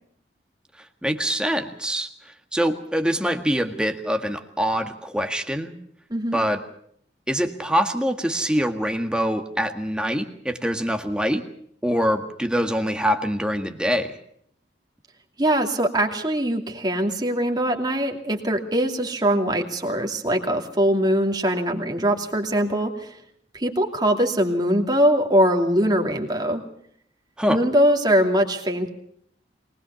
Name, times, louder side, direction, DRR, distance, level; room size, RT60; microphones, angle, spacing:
voice 1, 1.0-2.1 2.5-5.7 6.3-6.6 7.3-11.4 11.8-14.2 27.4-27.6, equal, 5° right, 5 dB, 1.7 m, -24 dB
voice 2, 6.1-6.4 15.4-23.2 23.5-26.6 27.5-28.9, equal, 25° right, 3 dB, 2.7 m, -22 dB
23.5 x 19.5 x 7.0 m, 0.66 s
head